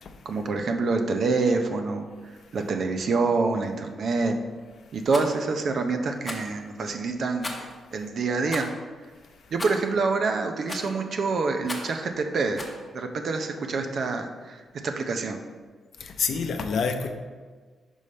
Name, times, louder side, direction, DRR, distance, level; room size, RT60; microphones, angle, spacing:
voice 1, 0.2-4.4 4.9-8.7 9.5-12.7 12.9-15.4, right 4 dB, 60° right, 5 dB, 0.6 m, -27 dB
Rattle, 5.1-5.3 6.2-6.5 7.4-7.8 8.5-8.7 9.6-9.9 10.7-11.0 11.6-12.0 12.6-12.8, left 2 dB, 20° left, 0.9 m, -36 dB
voice 2, 16.0-17.1, left 5 dB, 65° left, 6 dB, 0.6 m, -27 dB
5.4 x 5.0 x 4.3 m, 1.5 s
cardioid pair, 105°, 0 cm